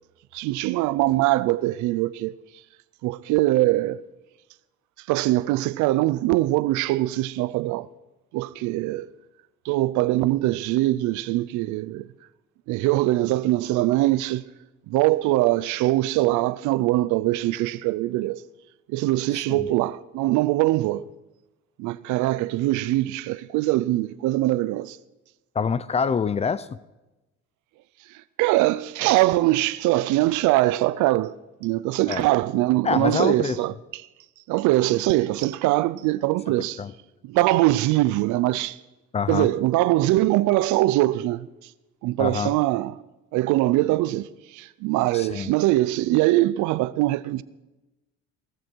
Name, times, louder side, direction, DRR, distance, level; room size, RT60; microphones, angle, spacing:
voice 1, 0.3-2.3 3.0-4.0 5.1-7.9 8.3-9.1 9.6-12.1 12.7-14.4 14.9-18.4 18.9-21.1 21.8-25.0 28.4-31.3 31.6-33.7 34.5-36.8 37.3-38.8 39.3-41.5 42.0-42.9 43.3-44.3 44.5-47.4, right 17 dB, 90° right, 0.6 m, -22 dB
voice 2, 19.3-19.7 25.6-26.7 32.1-32.2 32.8-33.6 36.8-36.9 39.1-39.5 42.2-42.5 45.1-45.5, left 6 dB, 20° left, 0.4 m, -26 dB
17.5 x 14.0 x 4.6 m
cardioid pair, 150°, 29 cm